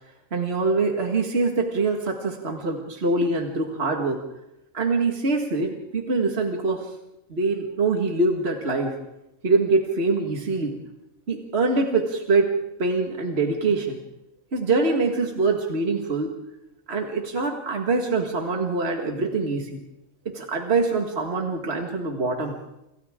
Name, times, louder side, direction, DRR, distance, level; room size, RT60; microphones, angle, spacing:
voice 1, 0.3-4.2 4.7-6.9 7.3-9.0 9.4-10.8 11.3-14.0 14.5-16.4 16.9-19.8 20.3-22.6, right 3 dB, 50° right, 2 dB, 2.1 m, -24 dB
29.5 x 27.5 x 3.7 m, 0.89 s
omnidirectional pair, 1.4 m